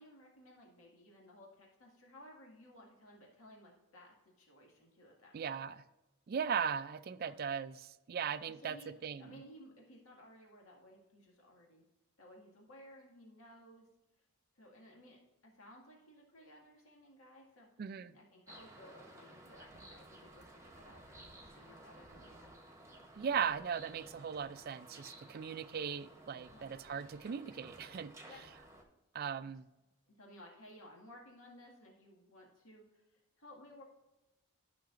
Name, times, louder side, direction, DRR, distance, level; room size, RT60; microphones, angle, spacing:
voice 1, 0.0-5.5 7.1-7.4 8.4-11.8 12.2-13.9 14.6-22.6 26.5-26.7 28.3-28.5 30.1-33.8, left 1 dB, 80° left, -1 dB, 2.0 m, -58 dB
voice 2, 5.3-5.8 6.3-8.8 9.0-9.4 17.8-18.1 23.2-28.1 29.1-29.7, right 7 dB, 45° right, 14 dB, 0.3 m, -38 dB
sound 1, 18.5-28.8, right 1 dB, 15° right, 1.0 m, -56 dB
13.0 x 5.8 x 2.5 m, 1.0 s
head